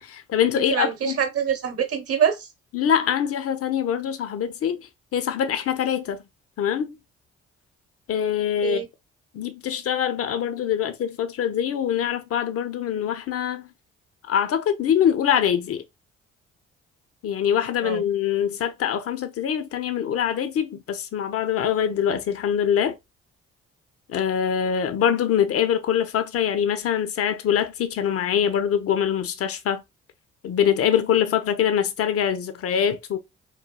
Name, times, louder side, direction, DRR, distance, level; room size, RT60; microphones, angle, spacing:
voice 1, 0.0-1.2 2.7-6.2 6.6-7.0 8.1-8.8 9.3-13.7 14.3-15.8 17.2-22.9 24.1-29.8 30.4-33.2, left 9 dB, 50° left, 0.6 m, -24 dB
voice 2, 0.6-2.5 8.6-8.9 17.8-18.0, right 8 dB, 50° right, 0.9 m, -25 dB
3.1 x 2.2 x 2.2 m
hypercardioid pair, 50°, 29 cm